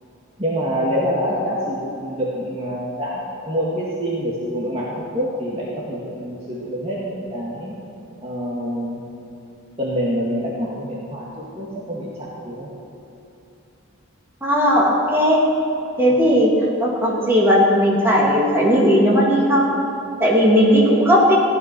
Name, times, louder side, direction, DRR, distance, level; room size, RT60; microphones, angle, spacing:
voice 1, 0.4-7.7 8.2-9.0 9.8-12.7, equal, 30° right, -6 dB, 2.0 m, -26 dB
voice 2, 14.4-15.4 16.0-16.5 16.8-19.7 20.2-21.3, equal, 10° right, -5 dB, 2.9 m, -16 dB
15.5 x 12.0 x 6.0 m, 2.8 s
head